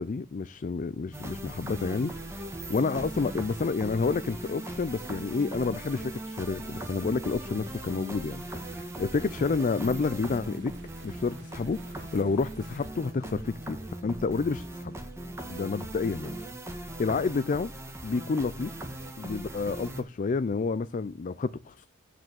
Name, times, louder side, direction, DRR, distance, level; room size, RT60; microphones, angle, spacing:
voice 1, 0.0-2.3 2.7-10.7 11.0-15.0 15.5-16.4 16.7-17.7 18.0-18.8 19.2-21.9, left 4 dB, 40° left, 0.4 m, -30 dB
sound 1, 1.1-20.0, right 1 dB, 15° right, 1.5 m, -39 dB
sound 2, 1.6-12.9, right 2 dB, 55° right, 1.8 m, -52 dB
12.0 x 4.9 x 7.6 m
head